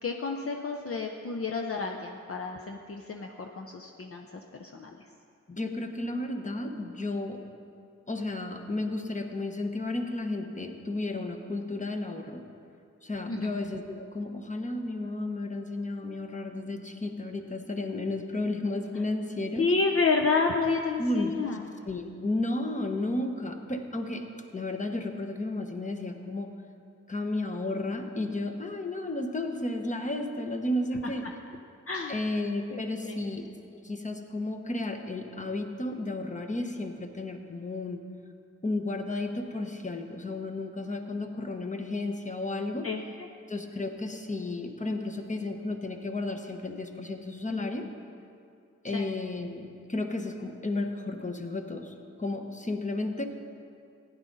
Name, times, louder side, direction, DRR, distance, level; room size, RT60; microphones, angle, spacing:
voice 1, 0.0-4.3 4.6-4.9 13.3-13.6 19.6-21.7 31.2-31.3 31.9-32.2 32.7-33.2 42.8-43.0 48.9-49.1, left 4 dB, 50° left, 2 dB, 0.7 m, -30 dB
voice 2, 5.5-7.4 8.1-12.4 13.0-19.7 21.0-21.3 21.8-24.3 24.5-26.5 27.1-31.3 32.1-33.5 33.7-38.0 38.6-42.9 43.5-47.9 48.8-53.3, left 2 dB, 25° left, 5 dB, 1.1 m, -33 dB
15.5 x 10.5 x 4.0 m, 2.4 s
wide cardioid pair, 70°, 30 cm